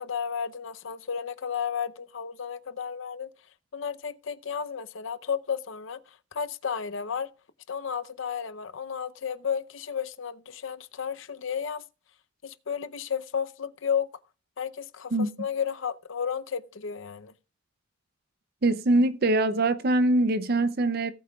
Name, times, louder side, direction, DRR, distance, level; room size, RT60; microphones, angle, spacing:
voice 1, 0.0-3.3 3.7-6.0 6.3-7.3 7.7-11.8 12.4-14.1 14.6-17.3, left 7 dB, 75° left, 0.7 m, -32 dB
voice 2, 18.6-21.1, right 2 dB, 50° right, 0.6 m, -23 dB
18.0 x 8.4 x 2.3 m
head